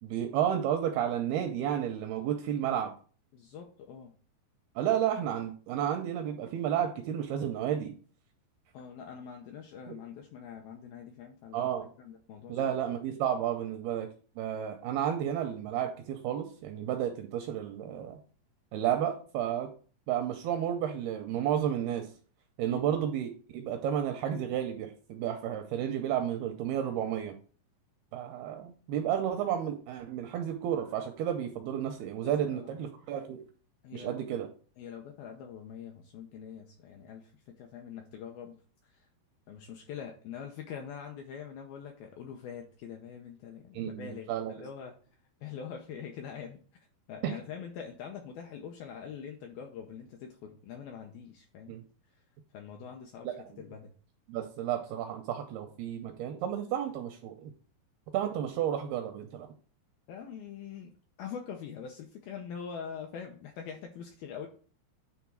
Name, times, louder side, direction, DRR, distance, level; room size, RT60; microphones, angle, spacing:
voice 1, 0.0-2.9 4.8-7.9 9.9-10.0 11.5-11.9 12.5-14.1 14.4-18.2 18.7-19.7 20.1-22.1 22.6-27.3 28.1-33.4 33.9-34.5 43.7-44.6 51.7-51.8 53.2-53.3 54.3-57.5 58.1-59.5, right 10 dB, 85° right, 5 dB, 2.3 m, -32 dB
voice 2, 3.3-4.2 8.7-11.7 12.0-12.8 22.7-23.0 32.2-32.7 33.8-34.4 34.8-39.1 39.5-45.0 45.4-51.7 52.5-53.9 60.1-64.5, left 7 dB, 80° left, 3 dB, 2.2 m, -44 dB
9.4 x 3.6 x 4.5 m, 0.40 s
omnidirectional pair, 5.1 m